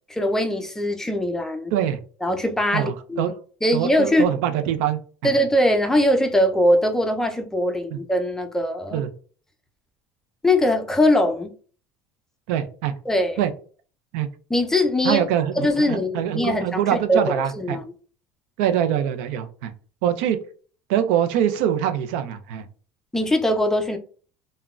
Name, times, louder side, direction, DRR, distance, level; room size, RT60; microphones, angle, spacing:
voice 1, 0.1-1.7 2.2-3.3 3.6-4.3 5.2-9.0 10.4-11.5 13.1-13.4 14.5-15.2 15.6-17.2 17.5-17.8 23.1-24.0, left 1 dB, 5° left, 0.4 m, -21 dB
voice 2, 2.7-3.3 3.7-5.0 7.9-8.0 8.9-9.1 12.5-12.9 13.4-13.5 14.1-14.3 15.0-17.8 18.6-19.7 20.0-20.4 20.9-22.6, right 10 dB, 85° right, 0.4 m, -23 dB
3.6 x 2.1 x 2.3 m
cardioid pair, 135°, 6 cm